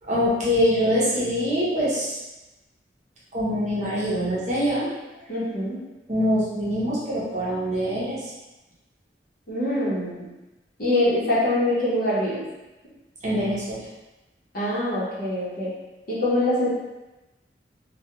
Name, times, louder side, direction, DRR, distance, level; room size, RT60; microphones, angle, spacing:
voice 1, 0.0-2.2 3.3-4.9 6.1-8.3 13.2-13.8, equal, 40° right, -7 dB, 0.7 m, -24 dB
voice 2, 5.3-5.8 9.5-10.3 10.8-12.4 13.3-13.5 14.5-15.7 16.1-16.7, left 1 dB, 55° left, -8 dB, 0.9 m, -24 dB
2.3 x 2.2 x 2.9 m, 1.1 s
head